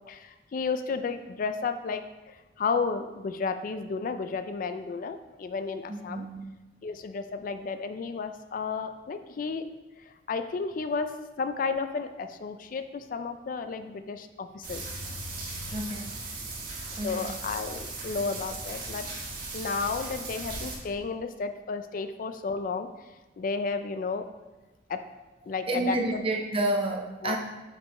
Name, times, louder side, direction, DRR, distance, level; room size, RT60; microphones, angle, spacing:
voice 1, 0.0-6.3 6.8-9.6 10.1-11.1 11.4-14.9 15.3-15.7 17.0-19.1 19.5-23.1 23.4-24.3 24.9-25.0 25.5-26.2 27.2-27.4, left 4 dB, 50° left, 9 dB, 0.4 m, -32 dB
voice 2, 5.9-6.4 15.7-16.1 17.0-17.3 25.7-27.4, right 1 dB, 30° right, 2 dB, 0.7 m, -30 dB
sound 1, 14.6-20.8, right 3 dB, 50° right, 1.5 m, -38 dB
7.9 x 5.3 x 3.1 m, 1.1 s
head